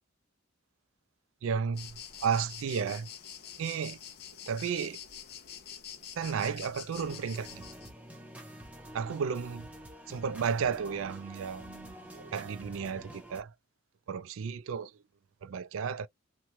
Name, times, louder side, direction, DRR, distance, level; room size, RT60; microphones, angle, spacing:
voice 1, 1.4-3.1 3.6-4.0 4.5-5.0 6.2-7.6 8.9-9.7 10.1-13.5 14.1-14.9 15.4-16.1, right 6 dB, 75° right, 0.4 m, -33 dB
sound 1, 1.7-7.9, left 8 dB, 50° left, 0.5 m, -46 dB
sound 2, 6.9-13.4, right 1 dB, 5° right, 0.7 m, -48 dB
3.0 x 2.2 x 2.6 m
head